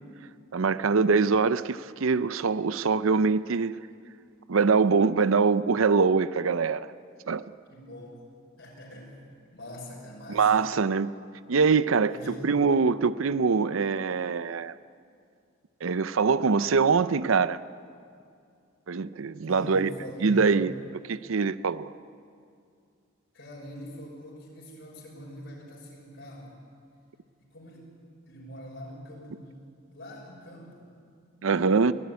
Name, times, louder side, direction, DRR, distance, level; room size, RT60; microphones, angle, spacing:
voice 1, 0.5-3.8 4.5-6.9 7.3-7.4 10.3-11.1 11.5-12.1 12.4-14.7 15.8-17.6 18.9-19.9 20.2-20.7 21.1-21.9 31.4-31.9, right 5 dB, 85° right, 15 dB, 0.6 m, -23 dB
voice 2, 7.7-8.2 8.6-9.2 9.5-10.6 12.1-12.5 19.5-20.7 23.3-26.6 27.4-27.9 28.3-29.5 29.9-31.0 31.4-31.9, equal, 65° left, -4 dB, 6.0 m, -43 dB
23.5 x 16.5 x 9.6 m, 2.3 s
head